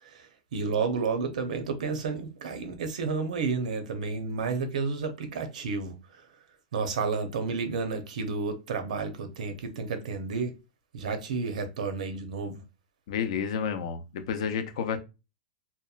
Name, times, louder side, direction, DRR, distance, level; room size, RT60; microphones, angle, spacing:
voice 1, 0.0-6.2 6.7-10.5 10.9-12.6, right 4 dB, 90° right, 0.6 m, -31 dB
voice 2, 13.1-15.0, left 7 dB, 60° left, 0.5 m, -30 dB
2.8 x 2.2 x 2.3 m
supercardioid pair, 165°, 4 cm